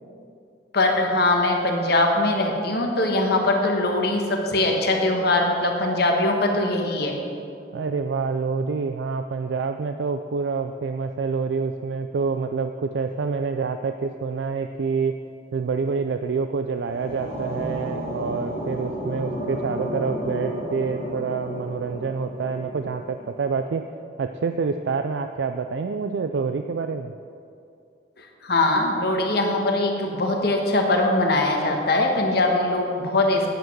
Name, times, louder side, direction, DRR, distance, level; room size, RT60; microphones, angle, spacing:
voice 1, 0.7-7.2 28.2-33.5, left 2 dB, 60° left, 2 dB, 1.3 m, -22 dB
voice 2, 7.7-15.2 15.5-23.8 24.2-27.1, right 5 dB, 75° right, 7 dB, 0.4 m, -27 dB
sound 1, 16.5-23.7, equal, 50° right, 2.7 m, -32 dB
9.1 x 7.3 x 6.1 m, 2.5 s
head